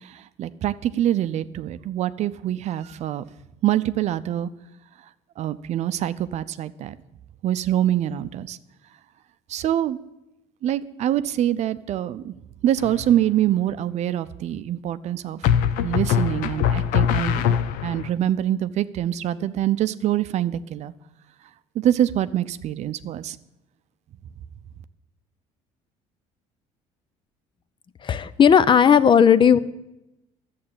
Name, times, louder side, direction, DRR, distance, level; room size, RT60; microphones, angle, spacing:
voice 1, 0.0-3.2 3.6-4.5 5.4-7.0 7.4-8.6 9.5-10.0 10.6-12.3 12.6-15.4 15.8-17.6 17.8-20.9 21.7-23.4, right 11 dB, 55° right, 14 dB, 0.6 m, -25 dB
sound 1, 12.8-13.3 15.4-18.1, left 9 dB, 80° left, 0.7 m, -22 dB
voice 2, 28.0-29.6, left 7 dB, 35° left, 15 dB, 0.7 m, -15 dB
11.5 x 7.5 x 8.7 m, 0.91 s
supercardioid pair, 90°, 14 cm